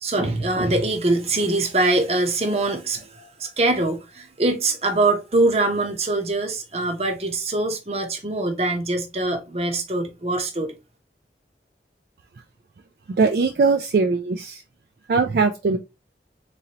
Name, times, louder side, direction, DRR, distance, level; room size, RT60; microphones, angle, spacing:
voice 1, 0.0-10.7, right 2 dB, 35° right, 0.7 m, -23 dB
voice 2, 13.2-14.6 15.1-15.8, right 4 dB, 55° right, 0.3 m, -20 dB
3.8 x 3.1 x 2.8 m
head